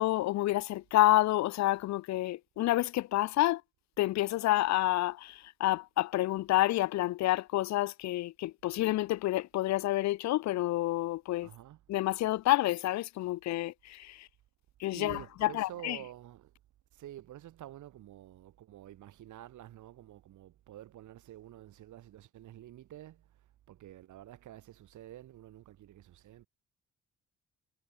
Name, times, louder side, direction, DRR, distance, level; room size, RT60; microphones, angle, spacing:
voice 1, 0.0-3.6 4.0-11.5 11.9-14.3 14.8-16.0, left 16 dB, 65° left, 0.5 m, -29 dB
voice 2, 11.4-11.8 14.9-16.5 16.9-23.3 23.7-26.5, right 13 dB, 75° right, 2.6 m, -49 dB
cardioid pair, 90°, 30 cm